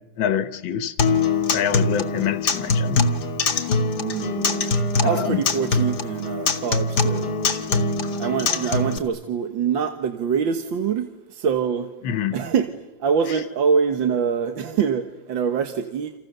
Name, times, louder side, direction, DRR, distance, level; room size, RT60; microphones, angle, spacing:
voice 1, 0.2-0.9 1.5-3.0 5.0-5.4 12.0-12.4, left 9 dB, 90° left, 1.9 m, -25 dB
Acoustic guitar, 1.0-9.0, left 3 dB, 60° left, 2.3 m, -23 dB
voice 2, 4.0-4.5 5.0-7.3 8.2-11.9 12.3-12.7 13.0-16.1, right 6 dB, 85° right, 2.0 m, -24 dB
29.0 x 28.5 x 6.8 m
omnidirectional pair, 2.0 m